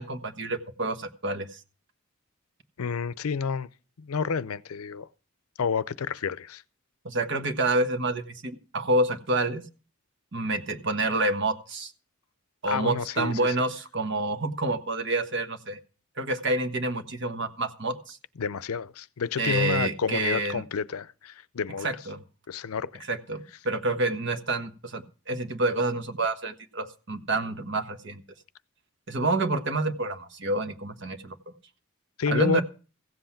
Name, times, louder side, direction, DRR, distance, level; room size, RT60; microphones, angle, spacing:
voice 1, 0.0-1.6 7.0-9.6 10.3-11.9 12.6-15.8 16.2-18.2 19.4-20.6 21.8-22.2 23.1-28.2 29.1-31.3 32.3-32.6, right 2 dB, 55° right, 1.3 m, -28 dB
voice 2, 2.8-3.7 4.0-5.1 5.6-6.6 12.7-13.5 18.4-21.9 22.5-23.0 32.2-32.6, left 6 dB, 85° left, 0.5 m, -30 dB
16.0 x 7.9 x 5.8 m
head